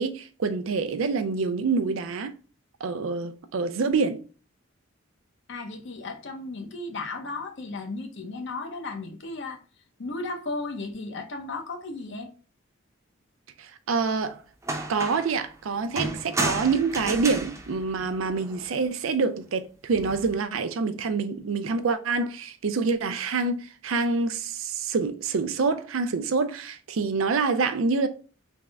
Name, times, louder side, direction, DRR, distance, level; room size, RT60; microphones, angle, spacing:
voice 1, 0.0-2.3 2.8-4.2 13.6-14.4 14.9-28.1, right 4 dB, 80° right, 0.4 m, -26 dB
voice 2, 5.5-9.6 10.0-12.3, left 3 dB, 60° left, 0.7 m, -35 dB
sound 1, 14.2-14.3 14.6-15.4 16.0-18.7 19.9-20.4, right 2 dB, 15° right, 0.5 m, -32 dB
3.5 x 2.1 x 3.4 m
head